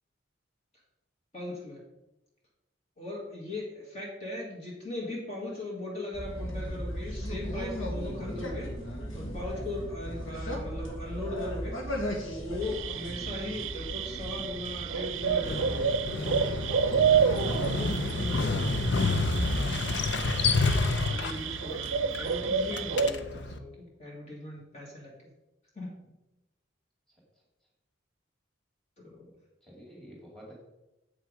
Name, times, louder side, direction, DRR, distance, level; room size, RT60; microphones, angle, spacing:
voice 1, 1.3-1.8 3.0-11.9 12.2-16.2 18.0-18.6 21.0-25.2 25.8-25.9 29.0-29.3, left 2 dB, 35° left, -4 dB, 2.0 m, -39 dB
sound 1, 6.1-20.5, equal, 90° left, 1.8 m, -37 dB
sound 2, 12.6-23.1, right 7 dB, 80° right, 0.5 m, -30 dB
Motorcycle, 15.2-23.6, left 3 dB, 65° left, 0.6 m, -30 dB
voice 2, 21.2-21.9 29.6-30.6, equal, 5° left, -3 dB, 2.2 m, -50 dB
7.7 x 6.2 x 5.1 m, 0.97 s
head